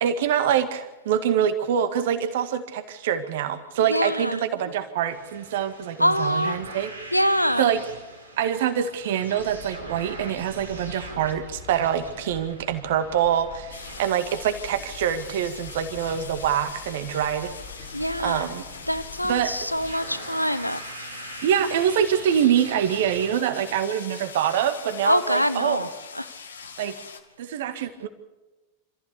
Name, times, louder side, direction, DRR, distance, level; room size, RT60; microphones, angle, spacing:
voice 1, 0.0-6.9 7.6-7.8 8.4-17.5 18.2-18.6 19.3-19.5 21.4-25.9 26.8-26.9 27.4-28.1, right 9 dB, 55° right, 9 dB, 1.9 m, -25 dB
voice 2, 3.9-4.4 6.0-6.6 7.1-7.7 17.9-18.5 18.9-20.8 25.0-25.9 26.1-26.3, equal, 90° left, 14 dB, 0.9 m, -24 dB
sound 1, 5.1-23.3, right 2 dB, 85° right, 3.3 m, -43 dB
sound 2, 9.4-19.9, left 5 dB, 50° left, 3.0 m, -45 dB
sound 3, 13.7-27.2, left 5 dB, 70° left, 1.8 m, -42 dB
27.0 x 14.5 x 6.9 m, 1.1 s
figure-of-eight pair, 90°, 0 cm